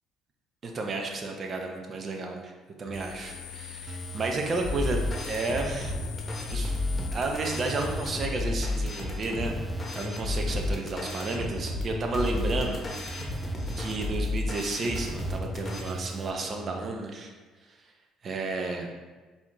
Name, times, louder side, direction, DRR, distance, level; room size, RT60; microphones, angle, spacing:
voice 1, 0.6-2.5 2.8-5.0 5.3-5.9 6.5-6.7 7.1-12.8 13.8-17.3 17.7-17.8 18.2-18.9, right 3 dB, 45° right, 2 dB, 0.7 m, -32 dB
sound 1, 2.9-8.3, left 9 dB, 75° left, 0.3 m, -43 dB
sound 2, 2.9-16.9, right 3 dB, 5° right, 0.4 m, -42 dB
sound 3, 4.6-15.9, left 2 dB, 30° left, 0.9 m, -32 dB
4.5 x 2.8 x 3.4 m, 1.3 s
hypercardioid pair, 60°, 0 cm